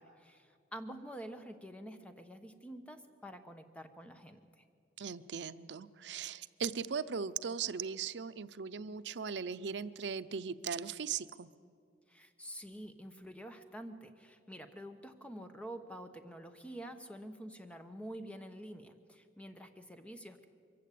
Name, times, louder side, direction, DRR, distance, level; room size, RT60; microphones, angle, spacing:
voice 1, 0.0-4.6 12.1-20.5, right 1 dB, 5° left, 7 dB, 1.0 m, -48 dB
voice 2, 5.0-11.5, right 6 dB, 80° right, 14 dB, 0.6 m, -38 dB
23.5 x 15.0 x 8.5 m, 2.4 s
head